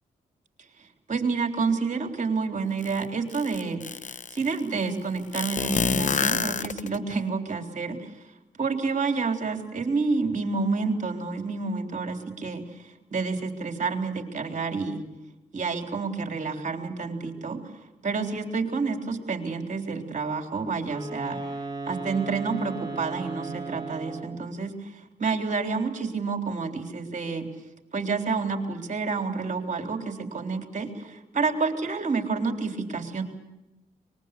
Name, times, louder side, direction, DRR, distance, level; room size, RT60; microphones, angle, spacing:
voice 1, 1.1-3.8 4.3-8.1 8.6-15.1 15.5-17.6 18.0-21.4 21.9-27.5 27.9-33.2, right 4 dB, 45° right, 4 dB, 3.8 m, -29 dB
sound 1, 2.8-2.9 3.3-4.4 5.3-7.2, left 6 dB, 45° left, 0.9 m, -27 dB
Wind instrument woodwind instrument, 20.8-24.5, right 3 dB, 25° right, 5.7 m, -36 dB
24.0 x 21.0 x 8.4 m, 0.95 s
supercardioid pair, 45°, 17 cm